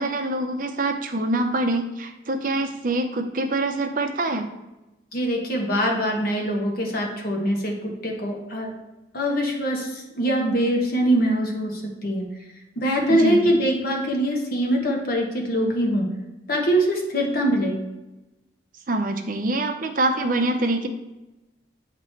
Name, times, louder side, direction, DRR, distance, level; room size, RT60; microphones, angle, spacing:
voice 1, 0.0-4.5 13.1-13.4 18.9-20.9, right 2 dB, 45° right, 5 dB, 0.6 m, -25 dB
voice 2, 5.1-8.7 9.1-12.2 12.8-16.1 16.5-17.8, equal, 50° left, 0 dB, 1.2 m, -23 dB
8.3 x 3.0 x 4.4 m, 1.0 s
head